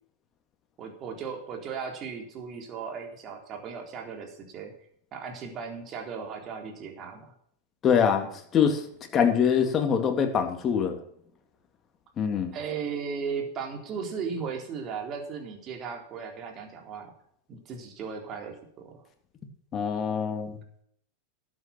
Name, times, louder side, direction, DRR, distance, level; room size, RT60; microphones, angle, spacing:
voice 1, 0.8-4.7 5.1-7.3 12.5-17.1 17.5-19.0, right 6 dB, 40° right, 3 dB, 3.8 m, -36 dB
voice 2, 7.8-8.8 9.1-11.0 12.2-12.5 19.7-20.6, left 7 dB, 30° left, 5 dB, 2.8 m, -24 dB
12.5 x 8.9 x 6.0 m, 0.67 s
hypercardioid pair, 95°, 0 cm